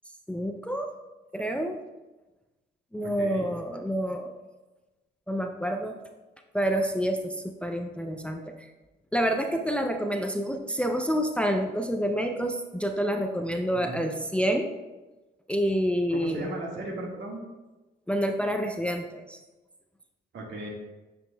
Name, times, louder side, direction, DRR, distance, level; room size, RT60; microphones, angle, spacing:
voice 1, 0.3-0.9 1.3-1.8 2.9-4.4 5.3-5.9 6.5-8.7 9.1-14.7 15.5-16.5 18.1-19.4, equal, 5° left, 3 dB, 0.4 m, -28 dB
voice 2, 3.0-3.5 13.7-14.1 16.1-17.4 20.3-20.7, right 1 dB, 70° right, -1 dB, 1.7 m, -36 dB
8.8 x 5.1 x 2.2 m, 1.1 s
cardioid pair, 90°, 20 cm